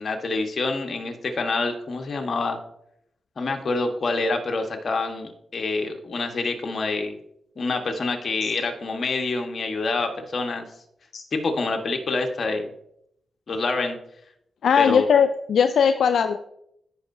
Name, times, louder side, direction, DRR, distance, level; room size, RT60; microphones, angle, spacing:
voice 1, 0.0-2.6 3.4-7.1 7.6-10.6 11.3-12.7 13.5-14.0 14.8-15.1, left 3 dB, 55° left, 4 dB, 1.3 m, -26 dB
voice 2, 14.6-16.4, left 7 dB, 80° left, 8 dB, 0.3 m, -19 dB
14.5 x 5.6 x 2.7 m, 0.76 s
cardioid pair, 65°, 0 cm